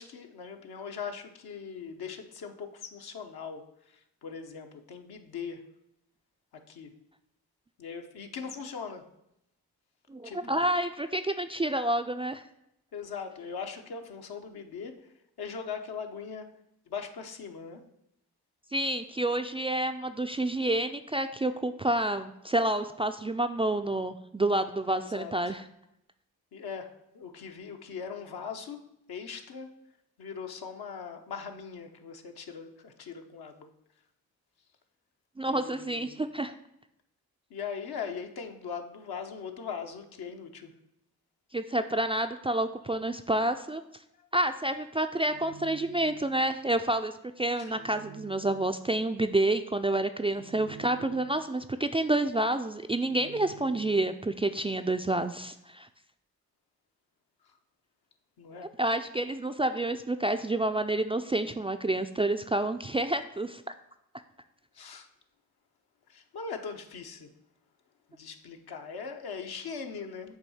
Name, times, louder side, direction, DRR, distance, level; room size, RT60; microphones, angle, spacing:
voice 1, 0.0-5.6 6.7-6.9 7.8-9.1 10.2-10.6 12.9-17.8 24.9-25.6 26.5-28.8 29.1-29.7 30.2-33.7 35.5-36.2 37.5-40.7 44.2-44.3 47.6-47.7 57.4-57.6 58.4-58.7 64.7-65.1 66.1-67.3 68.1-70.4, left 6 dB, 65° left, 4 dB, 0.9 m, -40 dB
voice 2, 10.1-12.4 18.7-25.6 35.4-36.5 41.5-43.8 44.3-55.9 58.8-63.7, right 1 dB, 15° right, 7 dB, 0.3 m, -29 dB
sound 1, 45.2-46.5 47.7-49.0 50.3-51.6 53.0-54.3, right 7 dB, 75° right, 0.7 m, -49 dB
7.6 x 2.7 x 5.5 m, 0.80 s
supercardioid pair, 40°, 40 cm